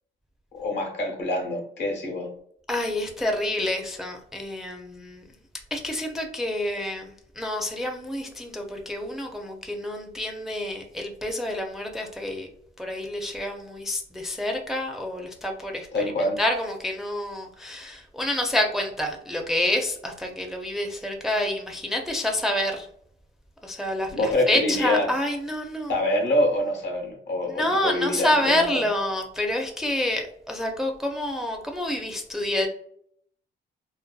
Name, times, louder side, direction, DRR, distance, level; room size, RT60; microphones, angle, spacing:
voice 1, 0.5-2.3 15.9-16.4 24.1-25.1 25.9-28.8, left 1 dB, 65° left, 0.9 m, -25 dB
voice 2, 2.7-5.2 5.7-12.5 12.8-15.9 16.4-22.9 23.6-25.9 27.6-32.7, left 1 dB, ahead, 0.4 m, -28 dB
2.6 x 2.2 x 2.2 m
cardioid pair, 90°, 20 cm